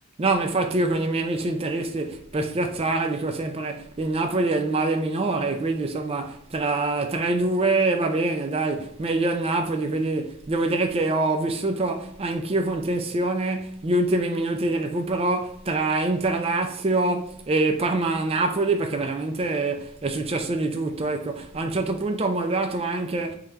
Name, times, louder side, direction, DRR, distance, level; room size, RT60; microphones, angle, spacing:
voice 1, 0.2-23.3, right 2 dB, 25° right, 0.4 m, -25 dB
3.7 x 3.3 x 4.3 m
head